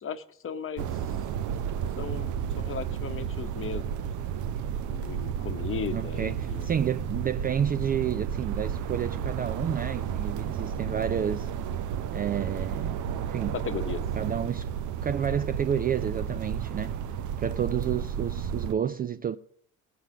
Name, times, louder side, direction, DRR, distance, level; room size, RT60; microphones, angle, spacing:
voice 1, 0.0-1.2 2.0-4.0 4.8-6.7 13.5-14.0, left 6 dB, 30° left, 1.0 m, -36 dB
sound 1, 0.8-18.7, right 8 dB, 50° right, 0.7 m, -32 dB
voice 2, 5.9-11.5 12.1-13.0 13.3-13.6 14.2-14.7 15.0-17.0 17.4-19.4, right 8 dB, 25° right, 0.4 m, -30 dB
19.0 x 7.3 x 5.0 m
figure-of-eight pair, 55°, 39 cm